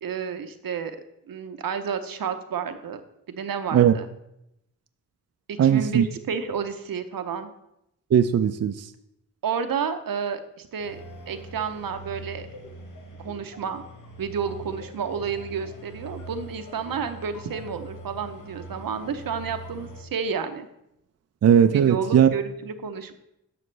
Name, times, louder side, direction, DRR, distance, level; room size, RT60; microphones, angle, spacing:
voice 1, 0.0-1.0 1.3-3.0 3.3-4.1 5.5-7.5 9.4-11.0 11.3-12.5 13.2-13.8 14.2-20.7 21.7-23.1, right 6 dB, 80° right, 8 dB, 0.8 m, -31 dB
voice 2, 5.6-6.1 8.1-8.9 21.4-22.3, right 9 dB, 50° right, 9 dB, 0.4 m, -18 dB
sound 1, 10.8-20.0, right 1 dB, 60° left, 1.4 m, -42 dB
11.0 x 6.4 x 3.3 m, 0.83 s
wide cardioid pair, 90°, 34 cm